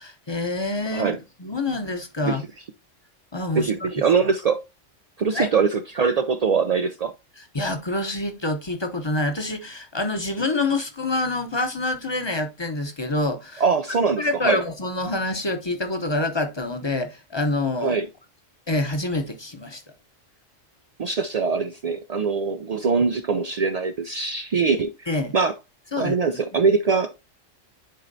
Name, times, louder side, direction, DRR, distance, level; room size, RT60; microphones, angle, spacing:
voice 1, 0.0-2.4 3.3-3.9 5.3-5.5 7.4-13.6 14.2-18.0 18.7-19.8 25.1-25.3 25.9-26.4, left 2 dB, 25° left, 0.7 m, -26 dB
voice 2, 3.6-4.6 5.2-7.1 13.6-14.6 17.8-18.1 21.0-25.1 25.3-25.5 26.0-27.2, right 5 dB, 75° right, 0.3 m, -22 dB
10.0 x 4.3 x 2.6 m
omnidirectional pair, 1.3 m